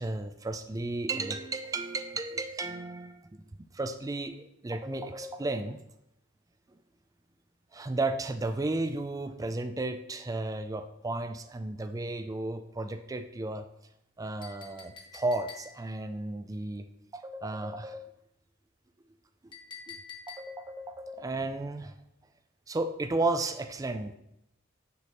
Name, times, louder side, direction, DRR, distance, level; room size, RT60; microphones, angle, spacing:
voice 1, 0.0-3.2 3.7-5.8 7.7-13.7 14.2-16.9 17.1-18.1 19.9-20.0 20.3-21.9 22.7-24.2, right 2 dB, 15° right, 9 dB, 0.3 m, -33 dB
Chink clink, 14.4-16.0 19.5-20.8, left 6 dB, 25° left, 0.9 m, -47 dB
9.3 x 3.4 x 4.0 m, 0.81 s
head